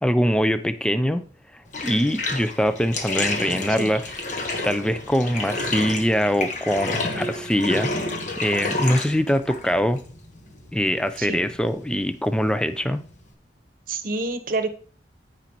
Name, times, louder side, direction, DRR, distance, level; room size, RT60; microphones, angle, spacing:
voice 1, 0.0-1.2 1.5-4.0 4.6-7.9 8.4-10.0 10.7-13.0, equal, 5° left, 11 dB, 0.4 m, -23 dB
Bathtub (filling or washing), 1.7-13.3, left 2 dB, 45° left, 1.3 m, -31 dB
voice 2, 13.9-14.7, right 3 dB, 50° right, 9 dB, 1.0 m, -27 dB
14.5 x 5.1 x 3.0 m, 0.42 s
head